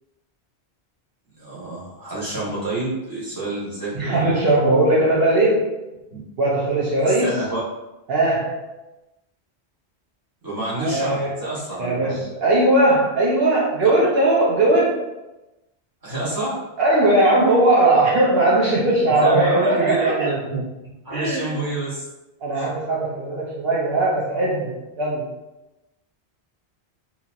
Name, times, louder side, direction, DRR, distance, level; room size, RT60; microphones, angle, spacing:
voice 1, 1.4-4.5 6.1-6.2 7.0-7.6 10.4-12.2 13.8-13.9 16.0-16.6 19.0-20.6 21.0-22.0 22.5-22.7, right 2 dB, 20° right, -8 dB, 1.1 m, -28 dB
voice 2, 3.9-5.6 6.4-7.3 8.1-8.6 10.8-11.4 11.8-15.0 16.8-20.3 21.1-21.5 22.4-25.3, right 2 dB, 65° right, -5 dB, 0.8 m, -19 dB
2.9 x 2.7 x 2.3 m, 1.0 s
omnidirectional pair, 1.1 m